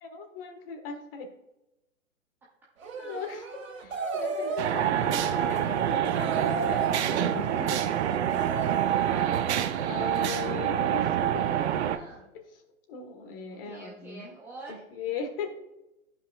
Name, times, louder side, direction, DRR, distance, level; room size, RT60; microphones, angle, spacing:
voice 1, 0.0-1.3 3.0-7.8 9.9-11.4 12.3-12.4 12.9-14.3 14.7-15.5, left 5 dB, 40° left, 6 dB, 1.5 m, -38 dB
sound 1, 2.8-9.0, right 4 dB, 70° right, 1.8 m, -36 dB
sound 2, 4.6-12.0, right 10 dB, 55° right, 0.7 m, -26 dB
voice 2, 8.2-9.7 11.2-12.3 13.5-14.8, right 2 dB, 5° right, -5 dB, 0.4 m, -48 dB
14.0 x 5.4 x 2.4 m, 0.95 s
figure-of-eight pair, 120°, 41 cm